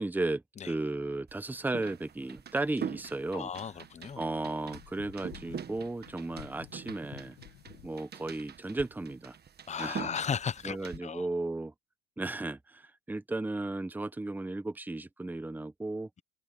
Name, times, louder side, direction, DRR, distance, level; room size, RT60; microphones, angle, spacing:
voice 1, 0.0-3.5 4.2-7.4 7.8-9.4 9.8-10.1 10.6-11.7 12.2-16.1, right 2 dB, 5° right, 0.9 m, -35 dB
sound 1, 1.3-11.0, right 8 dB, 30° right, 1.4 m, -44 dB
voice 2, 3.3-4.2 9.7-11.2, left 7 dB, 20° left, 0.7 m, -35 dB
sound 2, 3.7-8.0, left 21 dB, 75° left, 1.5 m, -52 dB
supercardioid pair, 120°, 35 cm